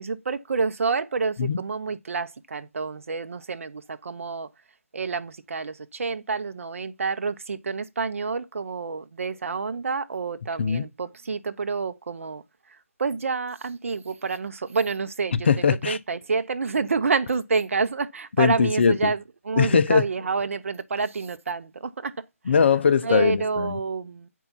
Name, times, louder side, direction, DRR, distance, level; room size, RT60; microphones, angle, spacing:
voice 1, 0.0-4.5 4.9-12.4 13.0-15.3 15.9-19.2 19.5-22.2 23.0-24.3, right 4 dB, 60° right, 0.8 m, -28 dB
voice 2, 15.3-16.0 18.4-19.1 19.6-20.1 22.4-23.8, left 6 dB, 50° left, 0.8 m, -21 dB
8.5 x 4.7 x 5.7 m
figure-of-eight pair, 160°, 8 cm